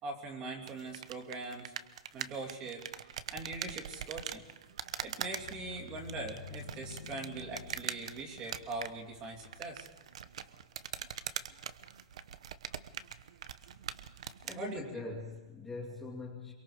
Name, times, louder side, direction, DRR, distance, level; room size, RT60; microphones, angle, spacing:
voice 1, 0.0-1.7 2.1-4.5 5.0-9.9 10.4-10.5 14.5-14.8, right 3 dB, 25° right, 1 dB, 2.9 m, -42 dB
sound 1, 0.6-14.6, right 8 dB, 80° right, 1.0 m, -43 dB
sound 2, 4.9-9.9, left 7 dB, 70° left, 1.5 m, -50 dB
voice 2, 14.4-16.5, left 3 dB, 5° left, -3 dB, 2.4 m, -42 dB
27.0 x 23.5 x 5.0 m, 1.2 s
supercardioid pair, 170°, 3 cm